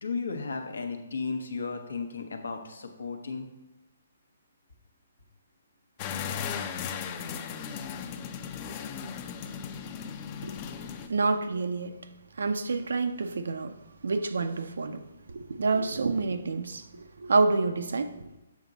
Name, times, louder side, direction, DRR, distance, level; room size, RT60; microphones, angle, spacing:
voice 1, 0.0-3.5, left 4 dB, 85° left, 1.0 m, -34 dB
sound 1, 6.0-11.1, left 7 dB, 30° left, 0.5 m, -36 dB
voice 2, 11.1-12.0 12.4-13.8 14.0-15.0 15.3-18.1, right 3 dB, 80° right, 0.5 m, -28 dB
7.1 x 5.0 x 4.0 m
hypercardioid pair, 155°, 0 cm